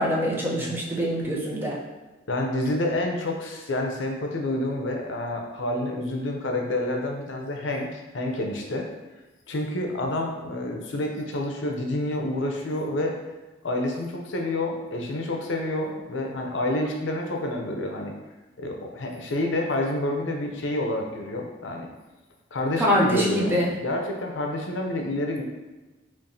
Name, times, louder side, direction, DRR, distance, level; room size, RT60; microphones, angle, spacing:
voice 1, 0.0-1.8 22.8-23.7, equal, 10° right, -4 dB, 0.6 m, -24 dB
voice 2, 2.3-7.9 8.1-8.9 9.5-13.2 13.6-18.1 18.6-21.9 22.5-25.4, left 1 dB, 75° left, 1 dB, 0.6 m, -28 dB
4.5 x 3.0 x 2.7 m, 1.2 s
head